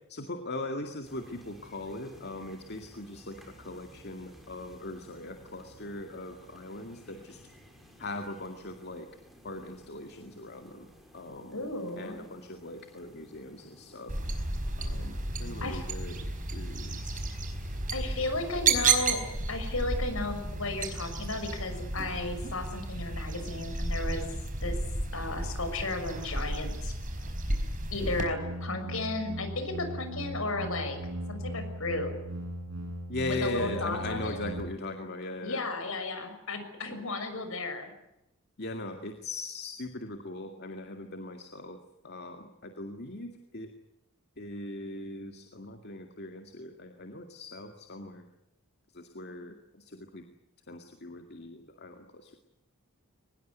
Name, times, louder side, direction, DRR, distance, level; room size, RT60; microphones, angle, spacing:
voice 1, 0.1-7.4 8.0-9.1 9.4-11.6 12.0-14.1 14.8-17.3 33.1-35.7 38.6-41.8 42.0-43.7 44.4-48.3 48.9-50.3 50.7-52.4, left 2 dB, 50° left, 5 dB, 2.2 m, -40 dB
sound 1, 1.0-18.9, equal, ahead, 5.9 m, -55 dB
voice 2, 11.5-12.2 15.6-15.8 17.9-19.2 19.5-24.3 24.6-24.8 25.1-26.9 27.9-31.0 31.3-32.1 33.3-34.5 35.4-37.9, left 2 dB, 65° left, 8 dB, 6.4 m, -34 dB
sound 2, 14.1-28.2, right 3 dB, 40° right, 4.9 m, -32 dB
sound 3, 28.0-34.6, right 1 dB, 70° right, 6.5 m, -38 dB
23.5 x 20.5 x 9.4 m, 0.88 s
head